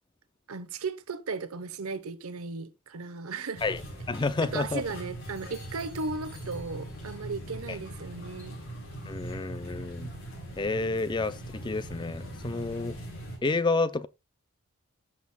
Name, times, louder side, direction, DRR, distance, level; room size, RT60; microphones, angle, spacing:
voice 1, 0.5-3.6 4.4-8.6, right 4 dB, 75° right, 0.9 m, -36 dB
sound 1, 3.5-13.4, right 1 dB, 60° left, 4.0 m, -41 dB
voice 2, 4.1-4.8 9.1-10.1 10.6-11.4 11.6-13.0 13.4-14.1, left 3 dB, 20° left, 0.4 m, -29 dB
13.0 x 6.0 x 2.2 m
head